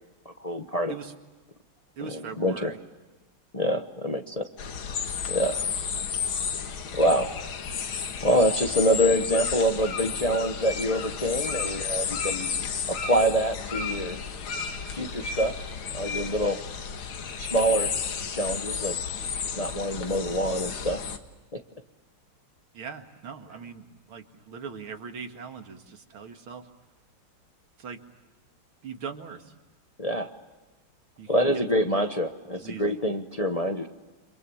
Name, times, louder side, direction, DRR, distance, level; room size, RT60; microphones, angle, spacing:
voice 1, 0.2-0.9 2.0-2.7 3.5-4.4 5.3-5.7 6.9-7.5 8.2-12.5 12.9-14.2 14.9-15.5 15.9-16.6 17.4-17.9 18.3-19.0 19.6-21.0 21.5-21.6 30.0-30.3 31.3-33.9, equal, 25° left, 6 dB, 0.8 m, -26 dB
voice 2, 2.0-2.8 22.7-26.7 27.8-28.0 28.8-29.5 31.2-32.0 32.6-33.0, right 6 dB, 80° right, 6 dB, 2.8 m, -40 dB
sound 1, 4.6-21.2, left 6 dB, 80° left, 2.3 m, -32 dB
29.5 x 26.5 x 7.1 m, 1.2 s
omnidirectional pair, 2.2 m